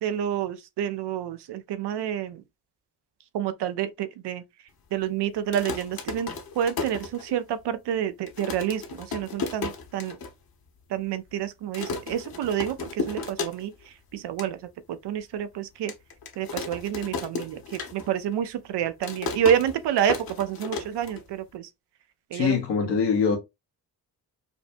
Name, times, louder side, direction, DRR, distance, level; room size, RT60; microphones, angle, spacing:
voice 1, 0.0-2.4 3.3-4.4 4.9-10.2 10.9-14.6 14.9-15.9 16.4-21.7 22.3-22.6, right 10 dB, 80° right, 0.6 m, -28 dB
sound 1, 5.4-7.6 8.0-8.1 8.3-10.3 10.7-10.8 11.0-11.3 11.7-13.9 14.2-14.5 15.0-15.1 15.9-18.3 18.6-21.5, left 4 dB, 60° left, 1.3 m, -34 dB
voice 2, 22.3-23.4, left 6 dB, 80° left, 1.3 m, -23 dB
5.3 x 2.2 x 2.6 m
cardioid pair, 60°, 41 cm